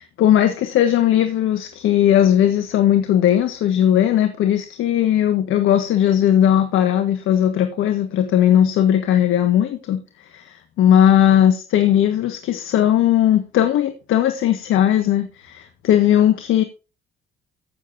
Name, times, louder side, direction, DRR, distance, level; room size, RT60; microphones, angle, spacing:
voice 1, 0.0-16.6, left 10 dB, 85° left, 8 dB, 1.5 m, -18 dB
15.0 x 7.2 x 2.7 m, 0.31 s
cardioid pair, 90°, 20 cm